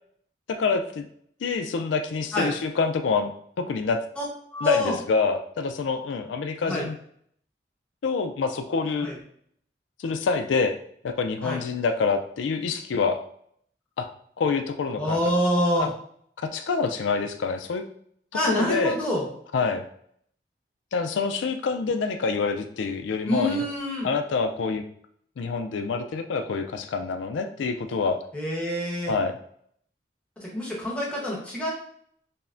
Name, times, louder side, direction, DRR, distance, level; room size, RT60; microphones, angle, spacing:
voice 1, 0.5-1.1 1.4-3.3 3.6-4.0 4.6-7.0 8.0-9.1 10.0-10.8 11.0-13.2 14.0-14.1 14.4-15.2 15.8-15.9 16.4-17.9 18.4-19.0 19.5-19.8 20.9-23.7 24.0-24.8 25.4-28.2 29.1-29.4, left 4 dB, 90° left, 7 dB, 0.4 m, -26 dB
voice 2, 4.5-4.9 6.7-6.9 9.0-9.1 11.4-11.6 15.0-15.9 18.3-19.2 23.2-24.1 28.3-29.1 30.4-31.7, equal, 5° left, -5 dB, 1.0 m, -26 dB
5.5 x 2.1 x 2.5 m, 0.64 s
head